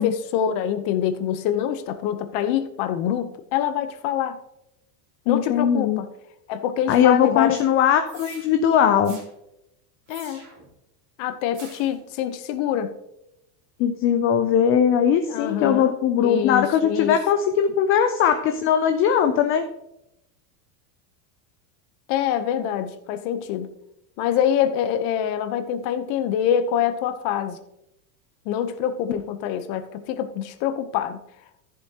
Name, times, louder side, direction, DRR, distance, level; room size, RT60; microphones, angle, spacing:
voice 1, 0.0-4.4 5.3-6.1 6.5-7.6 10.1-10.4 11.2-12.9 15.3-15.9 16.2-17.2 22.1-23.7 24.2-27.6 28.5-31.2, left 9 dB, 50° left, 0.9 m, -25 dB
voice 2, 5.3-6.0 6.9-9.2 13.8-19.7, left 8 dB, 30° left, 0.4 m, -20 dB
sound 1, 8.1-8.5 9.0-9.3 10.1-10.7 11.5-12.0, right 4 dB, 30° right, 3.0 m, -45 dB
14.0 x 7.3 x 2.9 m
supercardioid pair, 145°, 50 cm